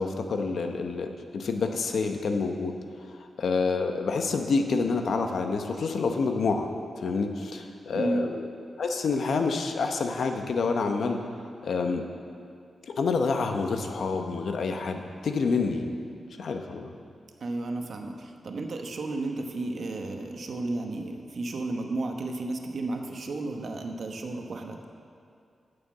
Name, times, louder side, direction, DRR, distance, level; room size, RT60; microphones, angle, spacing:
voice 1, 0.0-6.7 7.0-8.5 8.8-11.2 11.6-12.1 12.8-15.9 16.4-16.9, left 4 dB, 75° left, 5 dB, 0.9 m, -28 dB
voice 2, 7.9-8.3 17.4-24.8, right 2 dB, 60° right, 4 dB, 1.0 m, -33 dB
9.1 x 6.9 x 7.3 m, 2.4 s
wide cardioid pair, 100°, 0 cm